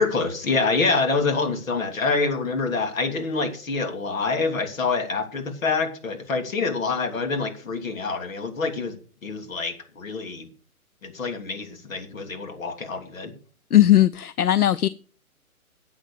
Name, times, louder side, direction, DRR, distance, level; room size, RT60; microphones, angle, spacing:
voice 1, 0.0-9.0 9.2-10.5 11.0-13.3, left 4 dB, 65° left, 3.1 m, -26 dB
voice 2, 13.7-14.9, left 13 dB, 85° left, 0.7 m, -17 dB
12.0 x 8.0 x 6.7 m
figure-of-eight pair, 135°, 44 cm